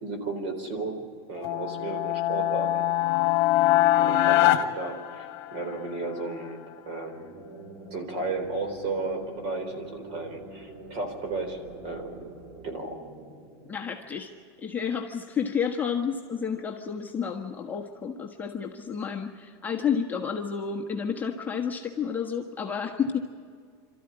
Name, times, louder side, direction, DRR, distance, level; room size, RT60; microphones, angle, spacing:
voice 1, 0.0-2.9 4.0-7.4 7.9-11.6 11.8-12.2 12.6-13.0, right 3 dB, 45° right, 6 dB, 4.0 m, -34 dB
sound 1, 1.4-5.7, left 14 dB, 45° left, 1.5 m, -23 dB
sound 2, 6.9-14.5, right 2 dB, 75° right, 5.8 m, -46 dB
voice 2, 13.7-14.3 14.6-23.2, left 7 dB, 15° left, 0 dB, 1.3 m, -30 dB
27.5 x 13.5 x 9.9 m, 2.1 s
supercardioid pair, 165°, 14 cm